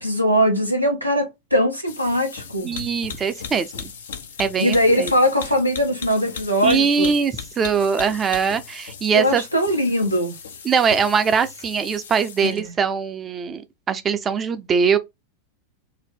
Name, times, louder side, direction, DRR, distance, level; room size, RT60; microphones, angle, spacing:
voice 1, 0.0-2.7 4.6-7.1 9.1-10.4 12.4-12.7, equal, 90° left, 0.8 m, -21 dB
sound 1, 1.9-12.7, left 6 dB, 65° left, 0.4 m, -38 dB
voice 2, 2.6-3.8 4.4-5.1 6.6-9.4 10.6-15.0, right 6 dB, 20° right, 0.4 m, -22 dB
2.6 x 2.0 x 3.4 m
figure-of-eight pair, 90°, 0 cm